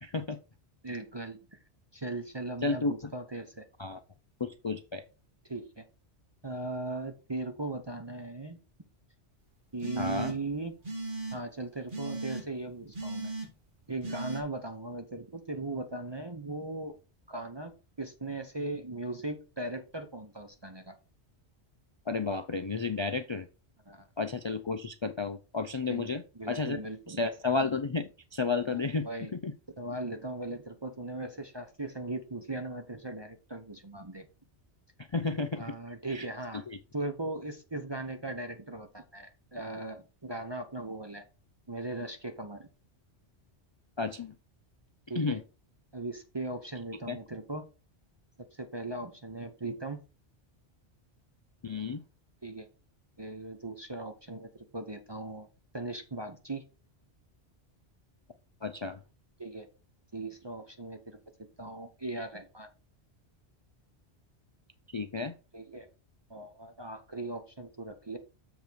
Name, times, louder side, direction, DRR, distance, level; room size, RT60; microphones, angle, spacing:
voice 1, 0.0-0.4 2.6-3.1 3.8-4.0 4.4-5.0 10.0-10.3 22.1-23.5 24.2-26.8 27.2-29.5 35.1-35.7 36.1-36.3 36.7-36.8 44.0-44.3 45.2-45.4 47.1-47.2 51.6-52.0 58.6-59.0 64.9-65.3, left 4 dB, 45° left, 8 dB, 0.4 m, -32 dB
voice 2, 0.8-1.6 1.9-3.6 5.4-5.8 6.4-8.6 9.7-10.8 11.3-13.3 13.9-16.9 17.3-20.9 23.9-24.1 25.9-27.2 28.7-29.3 29.8-34.3 35.6-36.6 36.9-41.2 41.7-42.7 45.1-45.4 45.9-47.7 48.5-50.0 52.4-52.7 53.2-55.5 55.7-56.6 59.4-59.7 60.1-62.7 65.5-65.9 66.3-68.2, right 2 dB, 25° right, 6 dB, 0.7 m, -38 dB
sound 1, 9.8-10.5 10.8-11.4 11.9-12.4 12.9-13.5 14.0-14.4, right 2 dB, 50° right, 1.8 m, -37 dB
7.2 x 5.2 x 4.6 m, 0.33 s
omnidirectional pair, 1.1 m